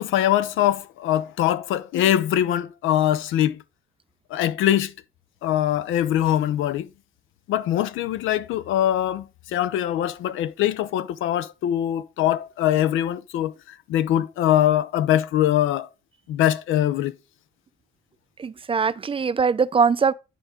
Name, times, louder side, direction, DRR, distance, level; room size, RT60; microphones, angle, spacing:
voice 1, 0.0-3.6 4.3-4.9 5.4-6.9 7.5-15.9 16.3-17.1, left 11 dB, 90° left, 0.6 m, -22 dB
voice 2, 18.4-20.1, right 5 dB, 25° right, 0.4 m, -21 dB
9.4 x 4.6 x 3.7 m
cardioid pair, 90°, 20 cm